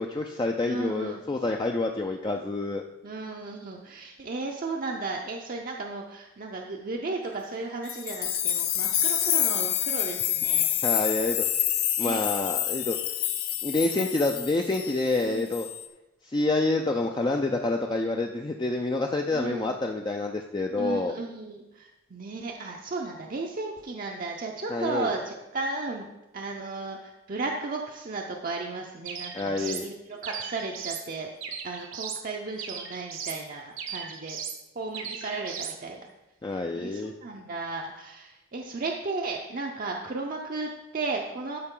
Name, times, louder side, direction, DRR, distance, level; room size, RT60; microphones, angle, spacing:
voice 1, 0.0-2.8 10.8-11.7 12.0-13.0 13.6-15.7 16.2-21.2 24.7-25.1 29.3-29.9 36.4-37.1, left 2 dB, 20° left, 2 dB, 0.4 m, -28 dB
voice 2, 0.7-1.2 3.0-10.9 12.0-12.2 15.2-15.5 19.3-19.8 20.7-26.1 26.3-31.3 31.6-34.4 34.8-36.1 36.5-41.6, right 3 dB, 40° right, 0 dB, 0.6 m, -35 dB
sound 1, 7.9-15.2 15.5-15.9, left 11 dB, 80° left, 0.7 m, -27 dB
sound 2, 29.1-29.9 30.2-31.1 31.4-32.2 32.6-33.4 33.8-34.6 34.9-35.8, right 7 dB, 75° right, 1.0 m, -37 dB
12.5 x 4.9 x 3.7 m, 0.98 s
head